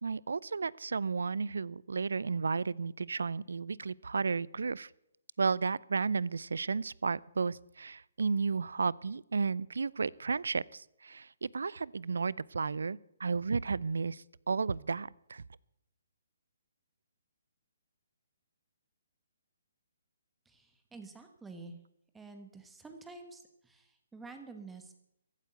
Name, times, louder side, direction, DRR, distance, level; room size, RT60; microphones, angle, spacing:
voice 1, 0.0-4.9 5.4-15.4, right 4 dB, 80° right, 24 dB, 0.5 m, -33 dB
voice 2, 20.4-21.8 22.1-24.9, right 3 dB, 5° right, 6 dB, 1.3 m, -49 dB
15.0 x 8.3 x 9.1 m, 0.81 s
hypercardioid pair, 150°, 0 cm